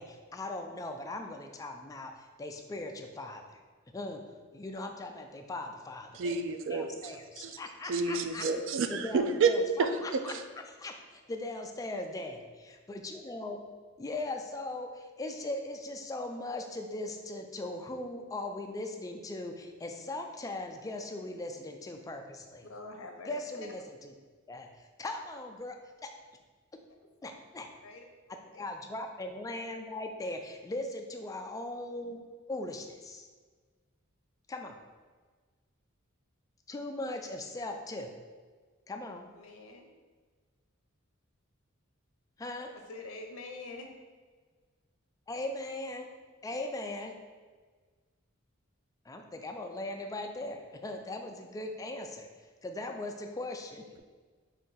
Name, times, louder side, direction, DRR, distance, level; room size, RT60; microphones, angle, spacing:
voice 1, 0.0-3.6 3.9-4.2 4.5-6.4 6.7-8.4 8.9-10.3 10.8-13.6 14.0-22.7 23.3-24.1 24.5-26.1 27.2-27.7 28.6-32.2 32.5-33.3 34.5-34.8 36.7-38.1 38.9-39.3 42.4-42.7 45.3-46.1 46.4-47.2 49.1-52.3 52.6-54.0, left 2 dB, 15° left, 4 dB, 0.3 m, -39 dB
voice 2, 6.1-7.6 7.9-9.5 9.8-10.4, right 4 dB, 65° right, 8 dB, 0.4 m, -30 dB
voice 3, 22.6-23.7 27.0-27.1 27.8-28.0 28.5-28.7 39.3-39.9 42.7-43.9, left 3 dB, 85° left, 3 dB, 0.6 m, -45 dB
4.2 x 2.6 x 3.8 m, 1.4 s
head